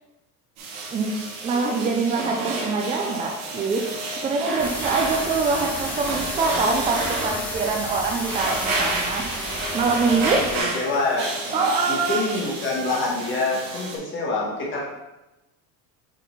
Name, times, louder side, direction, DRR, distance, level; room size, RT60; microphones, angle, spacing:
sound 1, 0.6-14.0, right 2 dB, 85° right, 2.5 m, -30 dB
voice 1, 1.4-9.4 9.7-10.4 11.5-12.2, right 4 dB, 15° right, 1 dB, 0.4 m, -24 dB
sound 2, 4.6-10.6, equal, 5° left, 1.2 m, -32 dB
voice 2, 10.5-11.3 11.9-14.8, left 3 dB, 30° left, -4 dB, 1.5 m, -26 dB
8.3 x 4.1 x 4.0 m, 1.0 s
cardioid pair, 165°, 41 cm